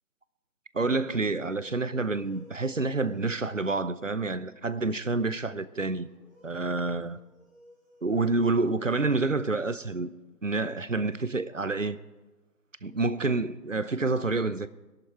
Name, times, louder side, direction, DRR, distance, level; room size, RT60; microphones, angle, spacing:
voice 1, 0.7-6.1 6.4-7.2 8.0-10.1 10.4-12.0 12.8-14.7, right 3 dB, 50° right, 0.6 m, -28 dB
sound 1, 0.9-4.7 6.0-9.6, left 1 dB, 5° right, 3.4 m, -56 dB
19.0 x 11.5 x 4.5 m
figure-of-eight pair, 180°, 48 cm